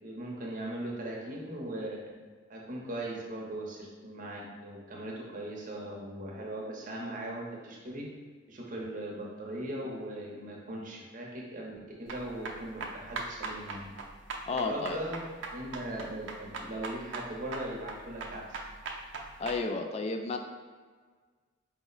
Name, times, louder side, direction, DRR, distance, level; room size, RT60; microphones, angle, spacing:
voice 1, 0.0-2.1 2.5-8.2 8.5-13.9 14.5-18.5, right 1 dB, 45° right, -2 dB, 0.8 m, -39 dB
sound 1, 12.1-19.6, right 3 dB, 75° right, 0.5 m, -40 dB
voice 2, 14.5-15.0 19.4-20.4, left 3 dB, 35° left, 5 dB, 0.3 m, -32 dB
4.8 x 2.1 x 3.8 m, 1.5 s
head